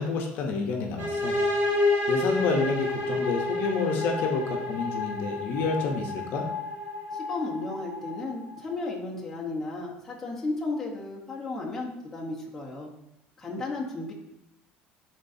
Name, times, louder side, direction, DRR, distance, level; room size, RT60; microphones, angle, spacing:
voice 1, 0.0-1.4 2.1-6.4, left 4 dB, 50° left, 2 dB, 0.9 m, -29 dB
sound 1, 1.0-8.6, left 2 dB, 45° right, 1.9 m, -29 dB
voice 2, 7.1-12.9 13.4-14.1, left 3 dB, 10° left, -5 dB, 1.1 m, -34 dB
11.0 x 3.9 x 2.7 m, 0.81 s
cardioid pair, 175°, 4 cm